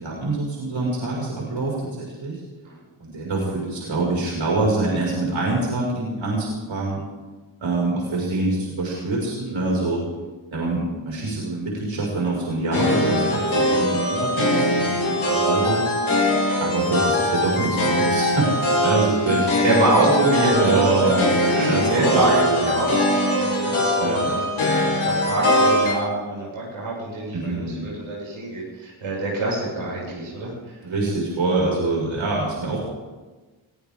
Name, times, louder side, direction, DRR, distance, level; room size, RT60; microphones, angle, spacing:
voice 1, 0.0-2.4 3.0-7.0 7.6-10.0 10.5-15.8 16.6-19.5 20.6-21.1 21.6-22.7 24.0-24.3 27.3-27.9 30.8-32.8, right 2 dB, 70° right, -4 dB, 6.2 m, -25 dB
sound 1, 12.7-25.9, left 1 dB, 75° left, 4.6 m, -21 dB
voice 2, 19.6-24.5 24.9-30.5, right 2 dB, 90° right, -5 dB, 6.9 m, -25 dB
22.5 x 15.5 x 3.8 m, 1.3 s
cardioid pair, 50°, 48 cm